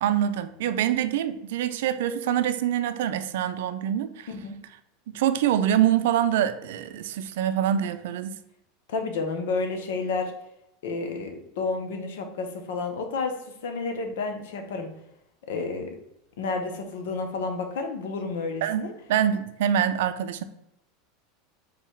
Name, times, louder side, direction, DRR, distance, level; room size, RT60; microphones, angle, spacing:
voice 1, 0.0-4.3 5.1-8.4 18.6-20.4, right 10 dB, 80° right, 10 dB, 0.4 m, -25 dB
voice 2, 8.9-10.3 10.8-13.3 13.6-14.9 15.5-16.0 16.4-18.9, left 4 dB, 80° left, 5 dB, 0.9 m, -30 dB
3.9 x 2.8 x 4.5 m, 0.83 s
supercardioid pair, 130°, 0 cm